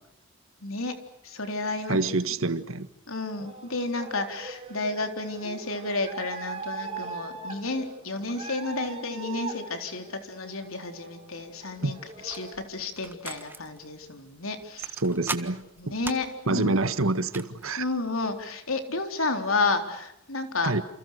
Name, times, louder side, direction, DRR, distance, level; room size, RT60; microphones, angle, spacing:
voice 1, 0.6-0.9 1.2-2.1 3.1-12.0 12.2-15.0 15.8-16.7 17.8-20.7, left 3 dB, 80° left, 4.0 m, -31 dB
voice 2, 1.9-2.9 11.8-11.9 15.0-15.6 16.5-17.9 20.6-20.8, right 2 dB, 80° right, 1.6 m, -26 dB
sound 1, 3.4-12.5, right 4 dB, 30° right, 4.5 m, -41 dB
sound 2, 11.4-18.4, right 3 dB, 10° right, 1.5 m, -42 dB
29.0 x 28.5 x 6.7 m
head